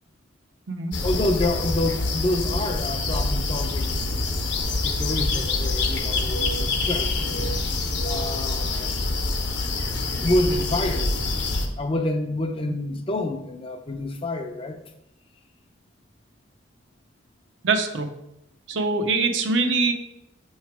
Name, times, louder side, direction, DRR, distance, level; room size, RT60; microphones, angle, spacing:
sound 1, 0.9-11.7, left 2 dB, 60° left, 0.8 m, -26 dB
voice 1, 1.0-4.3 4.8-7.1 8.0-9.1 10.2-11.2 11.8-14.8, left 1 dB, 30° left, 5 dB, 0.5 m, -28 dB
voice 2, 17.6-18.1 18.7-19.9, right 3 dB, 75° right, 6 dB, 0.6 m, -23 dB
6.6 x 3.1 x 4.6 m, 0.84 s
head